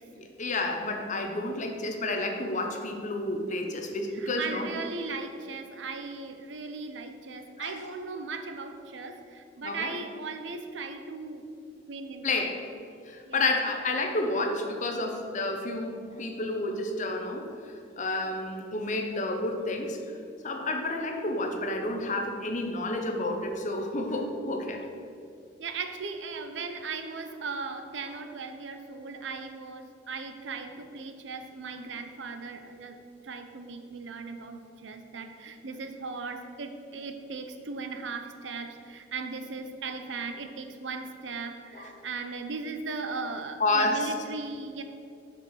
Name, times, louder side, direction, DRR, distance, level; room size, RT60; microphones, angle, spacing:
voice 1, 0.1-4.7 7.6-7.7 9.6-9.9 12.2-12.6 13.1-20.0 20.4-24.8 41.7-41.9 43.6-44.1, left 2 dB, 40° left, 3 dB, 0.8 m, -30 dB
voice 2, 4.1-11.4 11.9-12.5 13.2-13.4 25.6-44.8, right 4 dB, 75° right, 7 dB, 0.7 m, -38 dB
6.4 x 5.1 x 6.3 m, 2.5 s
head